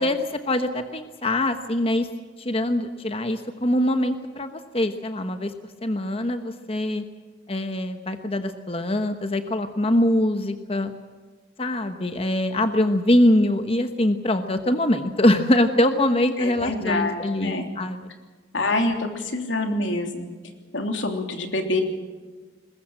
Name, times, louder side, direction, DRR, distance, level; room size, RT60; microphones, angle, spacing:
voice 1, 0.0-2.1 2.4-5.5 5.8-7.0 7.5-10.9 11.6-18.1, left 1 dB, 30° left, 8 dB, 1.1 m, -23 dB
voice 2, 16.4-17.7 18.5-20.3 20.7-21.8, left 2 dB, 85° left, 4 dB, 3.2 m, -26 dB
21.5 x 21.0 x 7.5 m, 1.4 s
head